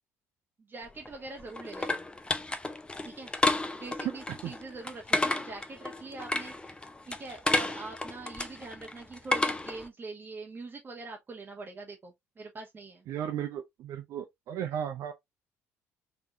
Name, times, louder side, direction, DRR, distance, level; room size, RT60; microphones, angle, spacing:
voice 1, 0.6-2.0 3.0-3.3 3.7-6.8 7.0-13.1, right 3 dB, 30° right, 1.1 m, -44 dB
sound 1, 0.9-9.9, left 2 dB, 15° left, 0.6 m, -32 dB
voice 2, 13.1-15.1, right 9 dB, 55° right, 0.6 m, -35 dB
4.1 x 3.5 x 2.7 m
figure-of-eight pair, 50°, 7 cm